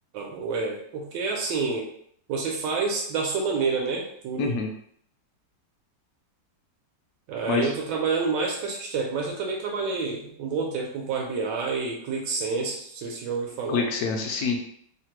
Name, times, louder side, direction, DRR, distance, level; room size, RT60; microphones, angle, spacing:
voice 1, 0.1-1.9 2.3-4.5 7.3-13.9, right 4 dB, 80° right, -1 dB, 1.2 m, -28 dB
voice 2, 4.4-4.7 7.4-7.7 13.7-14.6, left 4 dB, 70° left, 3 dB, 1.0 m, -26 dB
3.2 x 2.1 x 2.9 m, 0.65 s
omnidirectional pair, 2.0 m